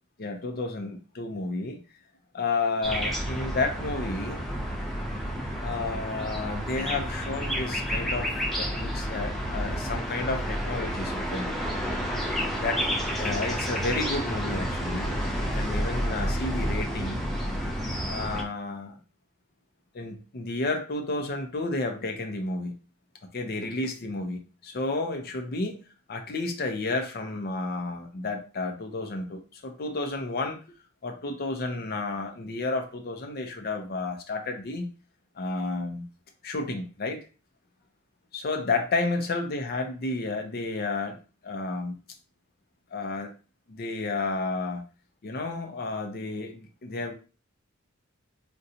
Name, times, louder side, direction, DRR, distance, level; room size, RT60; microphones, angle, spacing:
voice 1, 0.2-1.8 2.3-4.4 5.6-11.4 12.5-12.8 13.2-17.2 18.1-19.0 19.9-22.8 23.3-25.8 26.1-30.6 31.0-34.9 35.4-36.1 36.4-37.2 38.3-41.2 41.4-42.0 42.9-43.3 43.7-44.8 45.2-47.1, left 3 dB, 45° left, 5 dB, 0.6 m, -31 dB
sound 1, 2.8-18.4, equal, ahead, 0.6 m, -30 dB
3.8 x 2.2 x 2.7 m, 0.35 s
head